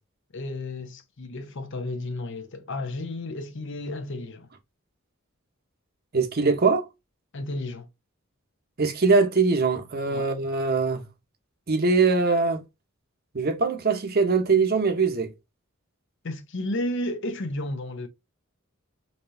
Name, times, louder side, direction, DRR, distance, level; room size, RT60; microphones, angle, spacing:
voice 1, 0.3-4.5 7.3-7.9 10.1-10.3 16.2-18.1, left 1 dB, 60° left, 0.8 m, -32 dB
voice 2, 6.1-6.9 8.8-11.0 11.7-12.6 13.3-15.3, right 4 dB, 50° right, 0.9 m, -22 dB
4.1 x 3.2 x 2.6 m
head